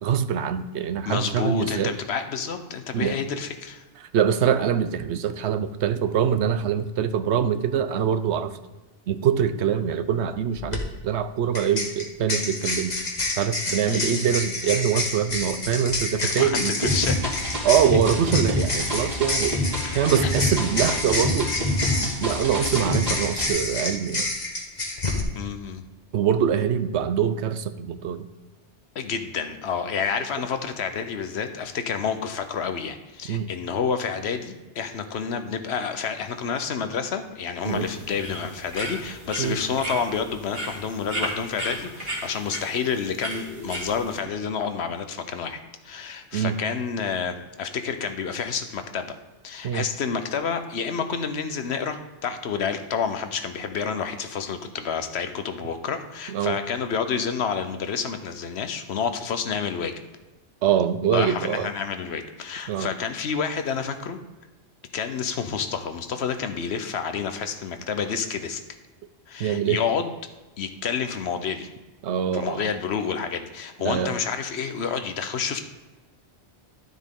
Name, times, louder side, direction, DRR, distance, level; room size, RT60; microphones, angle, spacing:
voice 1, 0.0-1.9 2.9-3.2 4.1-8.5 9.1-13.0 13.4-16.9 17.6-19.5 19.9-21.5 22.0-24.3 26.1-28.3 33.3-33.5 37.6-37.9 39.4-39.6 46.3-46.6 49.6-49.9 56.3-56.6 60.6-61.7 62.7-62.9 69.4-69.8 72.0-72.6 73.8-74.1, right 8 dB, 75° right, 11 dB, 0.9 m, -24 dB
voice 2, 1.1-3.8 13.8-14.3 16.2-17.3 19.8-20.3 21.9-22.1 25.3-25.8 28.9-49.2 49.4-59.9 61.1-64.2 64.9-68.6 69.3-70.1 70.6-71.7 72.3-75.6, left 6 dB, 70° left, 8 dB, 1.0 m, -29 dB
sound 1, 10.5-10.8 11.5-25.2, left 2 dB, 40° left, 1.3 m, -29 dB
sound 2, 16.8-23.5, left 1 dB, 35° right, 2.5 m, -27 dB
sound 3, 37.6-44.2, right 1 dB, 55° right, 2.2 m, -35 dB
12.0 x 7.3 x 3.7 m, 1.1 s
omnidirectional pair, 1.2 m